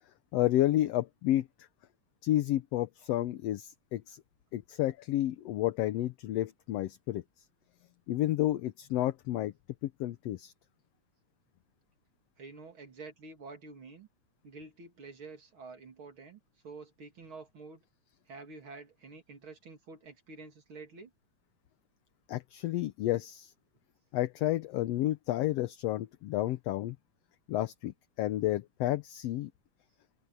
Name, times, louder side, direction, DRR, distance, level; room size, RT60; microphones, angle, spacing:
voice 1, 0.3-1.5 2.2-4.2 4.5-7.2 8.1-9.5 9.8-10.5 22.3-23.5 24.1-27.0 27.5-29.5, left 14 dB, 70° left, 1.7 m, -31 dB
voice 2, 12.4-14.1 14.4-17.8 18.3-21.1, right 3 dB, 45° right, 3.3 m, -48 dB
open air
omnidirectional pair, 3.3 m